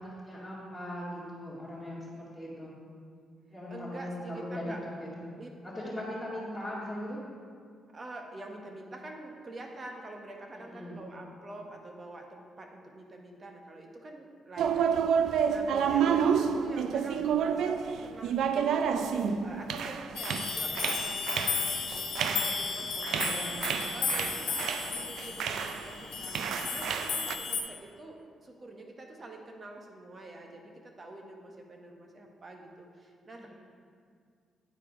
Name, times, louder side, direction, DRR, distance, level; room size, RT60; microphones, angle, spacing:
voice 1, 0.0-2.7 3.5-5.2 5.6-7.2 10.7-11.0 23.1-23.5 23.8-24.1 33.4-33.5, left 1 dB, 5° left, -12 dB, 2.2 m, -39 dB
voice 2, 3.7-4.8 5.4-5.5 5.8-6.0 7.9-19.1 19.4-21.8 22.1-23.6 23.9-26.4 26.6-33.5, right 2 dB, 40° right, 2 dB, 1.1 m, -46 dB
sound 1, 14.6-25.9 26.2-27.3, right 7 dB, 80° right, 0.3 m, -30 dB
sound 2, 20.2-27.6, left 6 dB, 80° left, 1.0 m, -34 dB
9.1 x 4.6 x 4.9 m, 2.2 s
cardioid pair, 75°, 0 cm